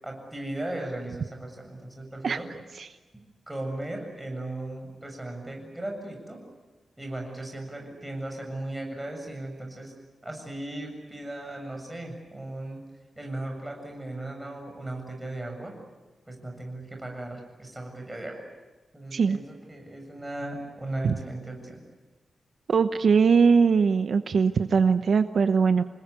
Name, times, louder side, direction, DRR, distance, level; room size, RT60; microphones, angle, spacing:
voice 1, 0.0-2.6 3.5-6.4 7.0-9.9 10.2-12.8 13.2-15.8 16.3-18.4 18.9-21.8, right 1 dB, 10° right, 2 dB, 7.5 m, -37 dB
voice 2, 22.7-25.8, right 5 dB, 60° right, 9 dB, 0.9 m, -21 dB
28.5 x 20.5 x 9.8 m, 1.2 s
wide cardioid pair, 140°, 0 cm